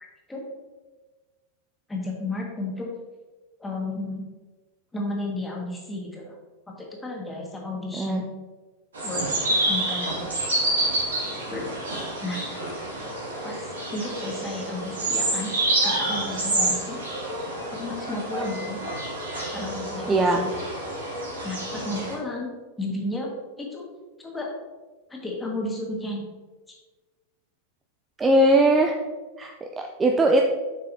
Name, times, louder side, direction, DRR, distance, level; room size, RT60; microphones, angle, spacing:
voice 1, 1.9-2.9 3.6-4.2 4.9-6.4 6.7-8.3 9.0-10.3 10.6-10.7 11.5-11.7 12.2-12.4 13.4-15.5 15.8-17.0 17.7-18.8 19.5-20.6 21.4-22.5 22.8-23.3 23.6-23.9 24.2-24.5 25.1-26.2 26.7-26.8, left 2 dB, 10° left, -2 dB, 1.6 m, -33 dB
sound 1, 8.9-22.2, right 1 dB, 65° right, 2.0 m, -28 dB
voice 2, 20.1-20.4 28.2-29.0 29.4-30.4, right 1 dB, 15° right, 2 dB, 0.5 m, -20 dB
7.3 x 5.7 x 2.7 m, 1.3 s
figure-of-eight pair, 90°, 0 cm